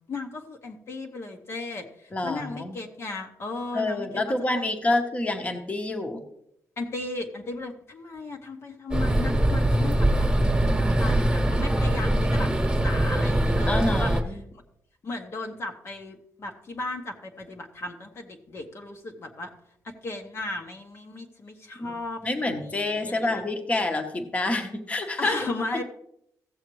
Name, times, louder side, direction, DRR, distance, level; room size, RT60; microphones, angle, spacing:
voice 1, 0.0-4.7 6.8-14.1 14.5-14.6 15.0-19.5 19.8-23.4 25.2-25.8, left 2 dB, 45° left, 3 dB, 1.0 m, -36 dB
voice 2, 2.1-2.8 3.7-6.2 12.0-12.2 13.7-14.4 21.8-21.9 22.2-25.4, left 2 dB, 20° left, 5 dB, 1.0 m, -27 dB
sound 1, 8.9-14.2, right 1 dB, 10° right, 1.3 m, -22 dB
16.0 x 7.2 x 3.1 m, 0.77 s
wide cardioid pair, 140°, 6 cm